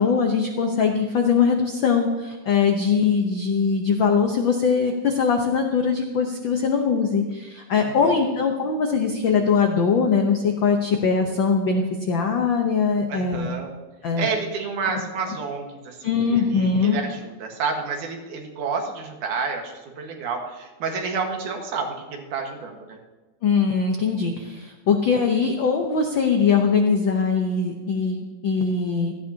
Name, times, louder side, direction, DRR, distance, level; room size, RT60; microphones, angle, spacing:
voice 1, 0.0-13.5 14.0-14.3 16.0-17.0 23.4-29.1, left 5 dB, 85° left, 3 dB, 1.0 m, -21 dB
voice 2, 7.7-8.3 13.1-13.7 14.1-23.0, right 5 dB, 80° right, 2 dB, 3.0 m, -30 dB
16.5 x 14.0 x 2.8 m, 1.2 s
omnidirectional pair, 3.5 m